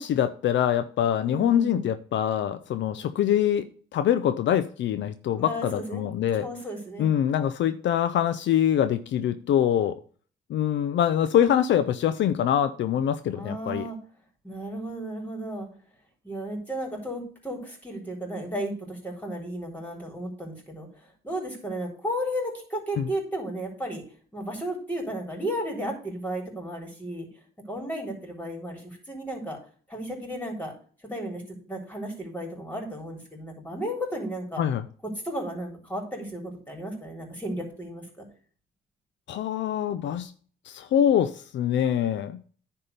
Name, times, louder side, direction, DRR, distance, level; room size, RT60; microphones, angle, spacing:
voice 1, 0.0-3.7 3.9-6.5 7.0-10.0 10.5-13.8 23.0-23.1 34.6-34.8 39.3-40.3 40.7-42.4, left 10 dB, 70° left, 10 dB, 0.6 m, -24 dB
voice 2, 1.2-1.8 5.4-6.0 6.3-7.2 13.3-14.0 14.4-15.7 16.2-24.0 24.3-27.3 27.7-29.6 29.9-30.7 31.1-34.6 35.2-38.3, equal, 10° left, 2 dB, 3.6 m, -34 dB
9.9 x 3.7 x 6.6 m, 0.43 s
cardioid pair, 90°, 20 cm